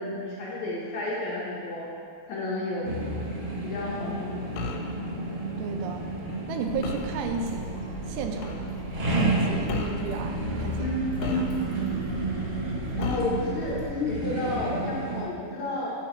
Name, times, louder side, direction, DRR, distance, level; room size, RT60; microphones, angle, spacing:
voice 1, 0.0-1.8 2.3-3.0 3.6-4.4 10.8-11.5 13.0-15.9, left 2 dB, 65° left, -7 dB, 1.9 m, -31 dB
sound 1, 2.8-15.2, right 2 dB, 55° right, 1.4 m, -31 dB
sound 2, 4.6-4.9 6.8-7.2 8.4-8.6 9.7-10.1 11.2-11.9 13.0-13.4, left 6 dB, 85° left, 2.4 m, -34 dB
voice 2, 5.6-6.1 6.5-7.6 8.1-8.7 9.1-11.0 11.2-11.5, right 6 dB, 90° right, 4 dB, 2.5 m, -33 dB
sound 3, 6.7-13.9, left 1 dB, 50° left, 1.2 m, -41 dB
8.6 x 4.6 x 4.3 m, 2.3 s
omnidirectional pair, 4.2 m